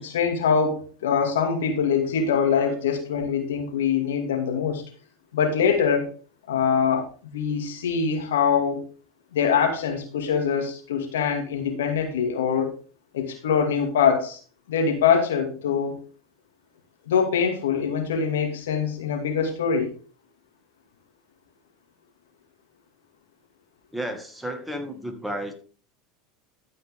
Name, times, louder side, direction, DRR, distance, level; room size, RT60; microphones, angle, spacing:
voice 1, 0.0-4.8 5.3-6.1 6.5-8.8 9.3-12.7 13.1-14.4 14.7-16.0 17.1-19.9, left 6 dB, 80° left, 4 dB, 2.5 m, -23 dB
voice 2, 23.9-25.5, right 1 dB, 5° right, 5 dB, 2.1 m, -32 dB
14.0 x 5.5 x 3.7 m, 0.38 s
hypercardioid pair, 90°, 0 cm